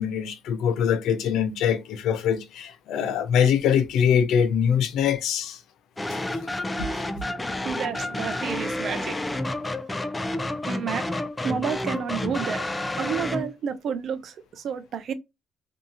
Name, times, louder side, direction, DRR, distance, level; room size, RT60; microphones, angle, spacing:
voice 1, 0.0-5.6 6.1-6.3 6.8-6.9, left 8 dB, 85° left, 0.5 m, -23 dB
sound 1, 6.0-13.5, left 1 dB, 15° left, 0.4 m, -30 dB
voice 2, 7.6-9.2 10.7-11.0 11.4-12.6 13.0-15.1, right 7 dB, 65° right, 0.5 m, -30 dB
2.7 x 2.3 x 2.6 m
cardioid pair, 90°, 0 cm